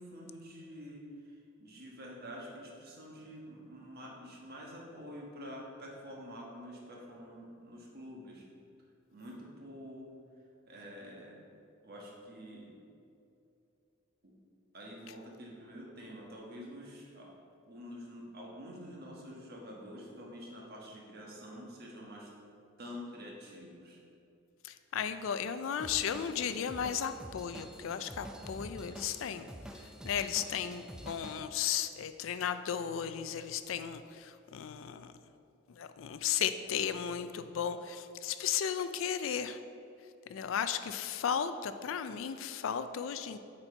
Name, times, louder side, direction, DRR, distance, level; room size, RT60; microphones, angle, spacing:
voice 1, 0.0-8.5 9.1-10.1 10.6-11.4 11.8-12.7 14.2-14.3 14.7-17.3 17.7-22.3 22.8-24.0, equal, 50° right, -2 dB, 1.3 m, -47 dB
voice 2, 24.6-29.5 29.7-35.1 35.7-39.6 40.3-43.4, left 8 dB, 70° left, 11 dB, 0.4 m, -35 dB
Drum kit / Drum, 25.8-31.4, equal, 5° right, 0.3 m, -48 dB
7.9 x 4.4 x 4.4 m, 2.7 s
head